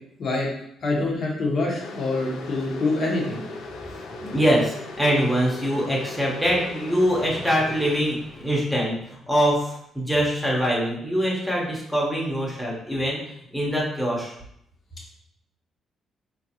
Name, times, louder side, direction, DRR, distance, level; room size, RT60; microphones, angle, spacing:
voice 1, 0.8-3.4, left 2 dB, 55° left, -2 dB, 1.1 m, -25 dB
sound 1, 1.8-8.0, left 3 dB, 85° left, 0.4 m, -38 dB
voice 2, 4.2-13.2 13.5-14.3, equal, ahead, -4 dB, 1.0 m, -23 dB
3.8 x 2.5 x 2.8 m, 0.74 s
cardioid pair, 90°, 0 cm